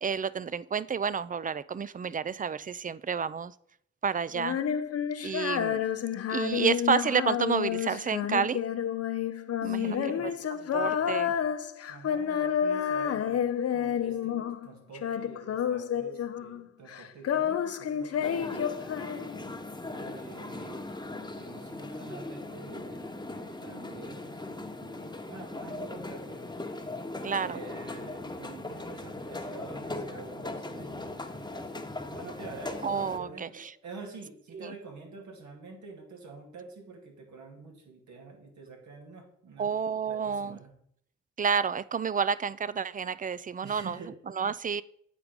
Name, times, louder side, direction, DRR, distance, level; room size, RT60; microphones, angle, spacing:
voice 1, 0.0-3.5 4.0-4.6 5.2-5.8 6.3-8.7 9.6-10.0 10.2-10.3 10.7-11.3 27.2-27.6 32.8-33.7 34.5-34.7 39.6-40.6 41.4-44.0 44.3-44.8, right 6 dB, 30° right, 17 dB, 0.4 m, -30 dB
Female singing, 4.3-14.7 14.9-16.6 16.9-19.6, left 9 dB, 55° left, 0.7 m, -30 dB
voice 2, 9.6-11.4 11.9-18.7 19.9-20.8 21.3-24.4 24.7-26.5 27.4-31.7 32.0-32.9 33.1-39.7 40.1-40.7 43.6-44.1, right 4 dB, 75° right, 1 dB, 2.2 m, -47 dB
sound 1, 18.2-33.2, left 2 dB, 15° left, 1.2 m, -39 dB
8.5 x 4.6 x 5.2 m, 0.69 s
supercardioid pair, 50°, 29 cm